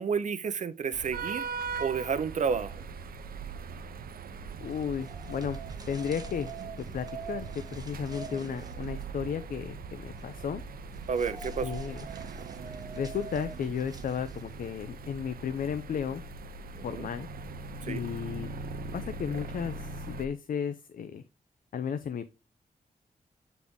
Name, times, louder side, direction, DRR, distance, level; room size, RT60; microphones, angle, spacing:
voice 1, 0.0-1.5 1.8-2.8 11.1-11.8 16.8-17.1 17.8-18.0, right 6 dB, 55° right, 0.6 m, -31 dB
sound 1, 0.9-20.3, right 4 dB, 90° right, 0.6 m, -41 dB
voice 2, 4.6-5.6 5.9-6.5 6.9-7.5 7.7-10.6 11.6-12.1 13.0-16.2 16.8-17.3 17.9-18.5 18.9-21.2 21.7-22.3, left 7 dB, 70° left, 0.6 m, -34 dB
sound 2, 4.7-14.7, right 5 dB, 25° right, 1.0 m, -45 dB
8.4 x 4.1 x 3.6 m
wide cardioid pair, 175°, 15 cm